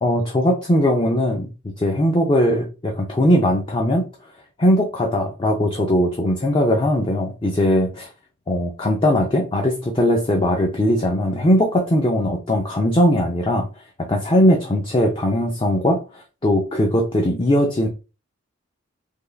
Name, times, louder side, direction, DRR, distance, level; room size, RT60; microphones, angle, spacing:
voice 1, 0.0-4.0 4.6-8.1 8.5-13.7 14.0-17.9, equal, 25° left, 1 dB, 0.5 m, -19 dB
3.5 x 2.2 x 3.3 m, 0.30 s
head